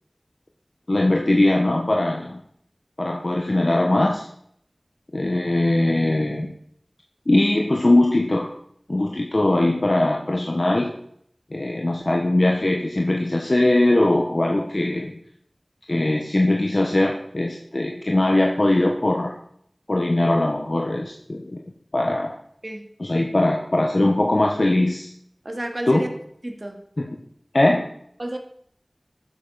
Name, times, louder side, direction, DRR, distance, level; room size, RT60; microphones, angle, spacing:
voice 1, 0.9-2.4 3.0-4.2 5.1-6.5 7.3-8.5 8.9-10.9 11.5-15.1 15.9-19.3 19.9-21.6 21.9-22.3 23.0-25.1 25.9-26.0 27.0-27.1 27.5-27.9, left 1 dB, 55° left, 1 dB, 1.6 m, -20 dB
voice 2, 25.4-26.1 26.4-26.8 28.2-28.4, right 1 dB, 45° right, 4 dB, 2.5 m, -30 dB
12.5 x 10.0 x 5.9 m, 0.68 s
wide cardioid pair, 50°, 0 cm